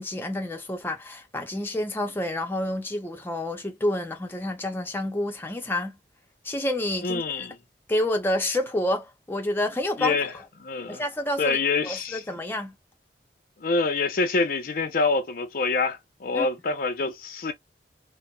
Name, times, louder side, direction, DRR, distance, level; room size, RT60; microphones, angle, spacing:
voice 1, 0.0-6.0 6.4-7.5 7.9-10.2 10.9-11.6 11.8-12.8 16.3-16.5, left 1 dB, 15° left, 0.5 m, -28 dB
voice 2, 7.0-7.6 10.0-10.3 10.6-11.0 11.4-12.2 13.6-17.5, left 3 dB, 55° left, 0.6 m, -26 dB
4.2 x 2.0 x 2.3 m
head